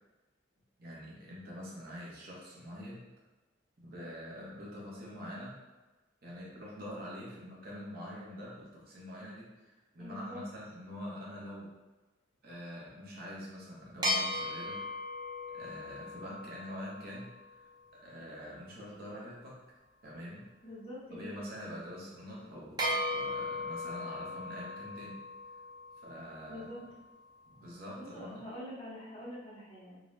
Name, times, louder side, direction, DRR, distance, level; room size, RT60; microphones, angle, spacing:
voice 1, 0.8-3.0 3.8-5.5 6.2-11.7 12.4-14.8 15.5-17.7 17.9-19.6 20.0-20.4 21.1-25.2 26.0-26.7 27.5-28.4, equal, 55° right, -5 dB, 1.0 m, -45 dB
voice 2, 10.0-10.4 20.6-21.4 26.5-26.9 28.0-30.0, left 1 dB, 30° left, -8 dB, 1.1 m, -45 dB
sound 1, 14.0-17.7 22.8-27.2, left 1 dB, 20° right, 0.8 m, -37 dB
3.8 x 2.3 x 3.1 m, 1.2 s
head